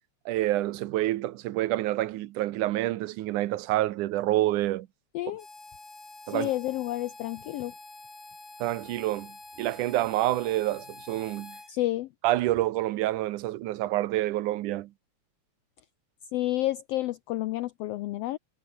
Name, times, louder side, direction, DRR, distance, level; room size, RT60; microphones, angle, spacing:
voice 1, 0.3-4.9 6.3-6.5 8.6-9.3 9.6-11.6 12.2-14.9, right 15 dB, 90° right, 2.4 m, -27 dB
voice 2, 5.1-5.4 6.3-7.7 11.7-12.1 16.3-18.4, left 16 dB, 85° left, 1.4 m, -30 dB
Harmonica, 5.4-11.7, left 3 dB, 45° left, 8.3 m, -47 dB
omnidirectional pair, 3.4 m